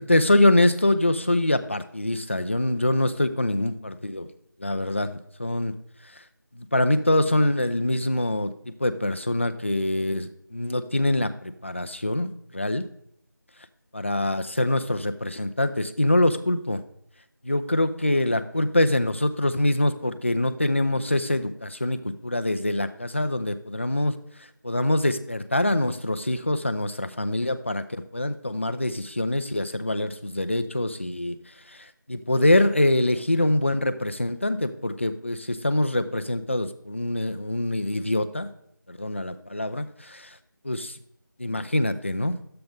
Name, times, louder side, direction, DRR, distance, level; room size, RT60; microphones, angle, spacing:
voice 1, 0.0-4.3 4.6-5.7 6.5-12.9 13.9-16.8 17.4-24.2 24.6-31.4 31.7-38.5 38.9-40.4 40.6-41.0 41.4-42.4, left 1 dB, 35° left, 11 dB, 0.5 m, -24 dB
11.0 x 7.8 x 3.4 m, 0.72 s
figure-of-eight pair, 170°, 11 cm